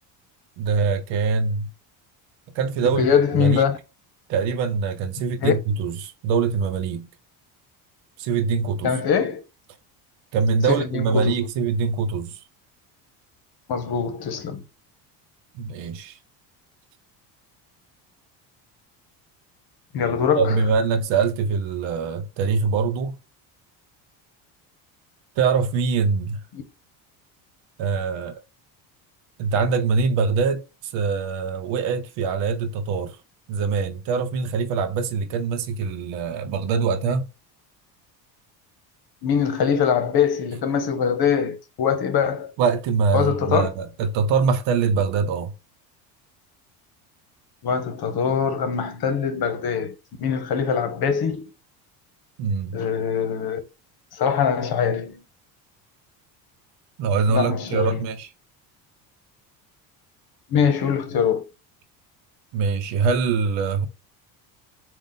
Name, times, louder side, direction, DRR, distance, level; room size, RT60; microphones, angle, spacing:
voice 1, 0.6-1.7 2.5-3.1 3.3-3.6 4.3-7.1 8.2-8.9 10.3-12.4 15.5-16.2 20.3-23.1 25.4-26.4 27.8-28.4 29.4-33.2 33.5-37.3 42.6-45.5 52.4-52.8 57.0-58.3 62.5-63.9, right 5 dB, 60° right, 0.8 m, -23 dB
voice 2, 2.8-3.8 5.4-5.5 8.8-9.4 10.7-11.5 13.7-14.6 19.9-20.6 26.5-26.6 39.2-42.5 43.1-43.7 47.6-49.9 50.2-51.5 52.7-53.6 54.1-55.2 57.3-58.0 60.5-61.4, left 7 dB, 50° left, 1.1 m, -23 dB
3.6 x 2.5 x 3.9 m
supercardioid pair, 80°, 49 cm